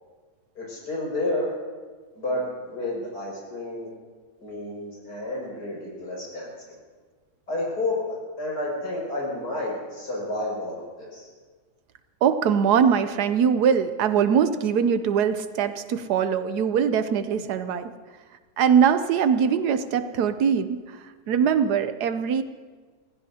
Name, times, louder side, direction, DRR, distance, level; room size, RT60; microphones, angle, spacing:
voice 1, 0.6-1.5 2.1-3.9 4.4-6.8 7.5-11.3, left 2 dB, 85° left, -4 dB, 6.6 m, -30 dB
voice 2, 12.2-17.9 18.6-21.0 21.3-22.4, right 7 dB, 80° right, 10 dB, 1.2 m, -22 dB
29.5 x 16.0 x 2.8 m, 1.5 s
omnidirectional pair, 1.7 m